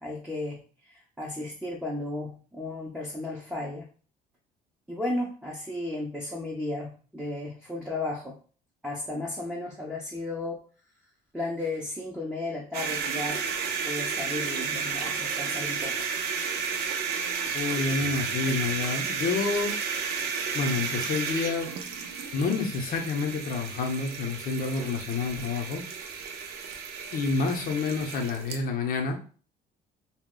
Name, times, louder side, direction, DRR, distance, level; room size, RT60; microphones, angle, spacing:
voice 1, 0.0-3.9 4.9-8.4 8.8-10.6 11.3-13.4 13.9-16.0, left 2 dB, 5° right, -3 dB, 0.6 m, -34 dB
sound 1, 12.7-28.6, right 6 dB, 75° right, 0.5 m, -32 dB
voice 2, 17.5-19.8 20.5-21.7 22.3-25.8 27.1-29.2, left 4 dB, 60° left, 3 dB, 0.7 m, -28 dB
2.3 x 2.0 x 3.7 m, 0.40 s
cardioid pair, 110°, 17 cm